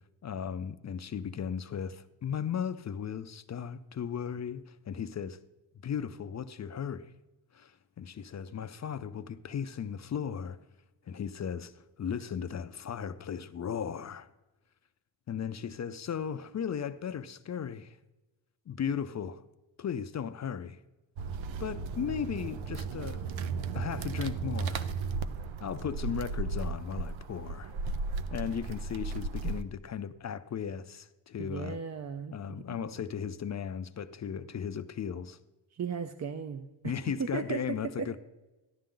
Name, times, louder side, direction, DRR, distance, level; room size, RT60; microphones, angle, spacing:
voice 1, 0.2-5.4 5.8-7.1 7.5-10.6 11.1-14.3 15.3-18.0 18.7-19.4 19.8-20.8 21.6-23.2 23.7-24.9 25.6-27.7 28.3-31.8 32.3-35.4 36.8-38.2, left 7 dB, 40° left, 0.4 m, -36 dB
sound 1, 21.2-29.6, right 4 dB, 80° right, 0.8 m, -35 dB
voice 2, 31.4-32.9 35.7-37.6 38.0-38.2, right 6 dB, 40° right, 0.5 m, -37 dB
14.0 x 11.0 x 3.8 m
wide cardioid pair, 165°, 46 cm